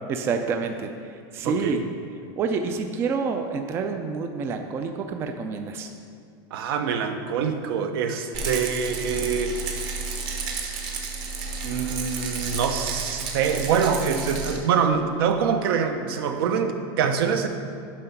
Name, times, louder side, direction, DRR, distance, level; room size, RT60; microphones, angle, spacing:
voice 1, 0.1-1.8 2.4-5.9, right 5 dB, 20° right, 6 dB, 0.3 m, -28 dB
voice 2, 1.4-1.8 6.5-9.7 11.6-17.5, right 6 dB, 75° right, 7 dB, 0.8 m, -25 dB
Rattle, 8.3-14.6, right 4 dB, 40° right, 1.0 m, -31 dB
7.5 x 5.5 x 5.8 m, 2.4 s
supercardioid pair, 170°, 12 cm